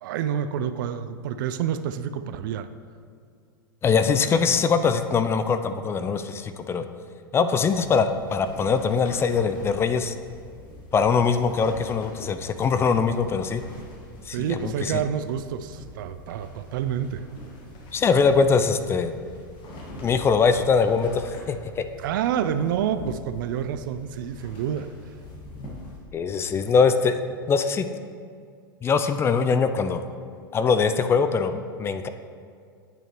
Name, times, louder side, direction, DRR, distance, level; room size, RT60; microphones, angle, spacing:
voice 1, 0.0-2.7 13.7-13.8 14.3-17.2 22.0-24.9, right 9 dB, 65° right, 12 dB, 0.4 m, -28 dB
voice 2, 3.8-6.9 7.3-10.1 10.9-13.6 14.3-15.0 17.9-19.1 20.0-21.8 26.1-27.2 27.5-27.8 28.8-30.0 30.5-32.1, left 5 dB, 20° left, 9 dB, 0.3 m, -22 dB
sound 1, 7.7-26.0, left 1 dB, 40° left, 1.6 m, -44 dB
8.6 x 6.2 x 3.0 m, 2.2 s
hypercardioid pair, 100°, 12 cm